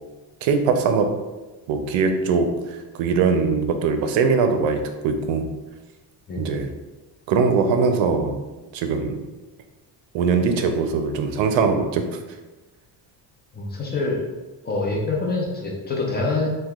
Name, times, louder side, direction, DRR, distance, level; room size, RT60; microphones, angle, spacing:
voice 1, 0.4-1.1 1.7-2.5 2.9-5.5 6.4-6.7 7.3-8.4 8.7-9.2 10.1-12.0, right 5 dB, 85° right, 6 dB, 0.5 m, -21 dB
voice 2, 6.3-6.7 13.5-14.2 14.6-16.5, left 3 dB, 25° left, -2 dB, 0.4 m, -25 dB
2.8 x 2.2 x 3.4 m, 1.1 s
cardioid pair, 145°, 44 cm